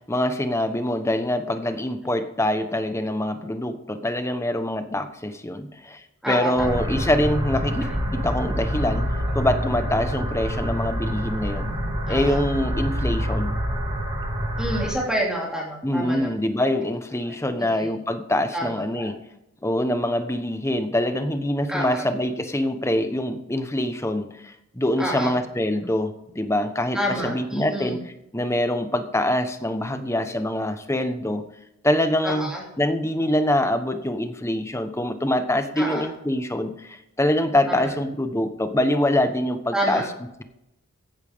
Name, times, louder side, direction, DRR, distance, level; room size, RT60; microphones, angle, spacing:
voice 1, 0.1-6.0 6.3-9.0 9.3-11.7 12.1-13.5 15.8-19.2 19.6-28.0 28.3-31.4 31.8-32.5 32.8-40.0, left 1 dB, 15° left, 8 dB, 1.2 m, -24 dB
voice 2, 6.2-6.8 12.1-12.5 14.6-16.3 17.3-17.9 18.5-19.1 21.7-22.1 25.0-25.4 26.9-28.0 32.2-32.6 35.8-36.1 37.7-37.8 39.7-40.1, equal, 5° right, -3 dB, 3.0 m, -28 dB
sound 1, 6.6-14.9, equal, 20° right, 2.9 m, -26 dB
15.5 x 11.5 x 3.7 m, 0.84 s
head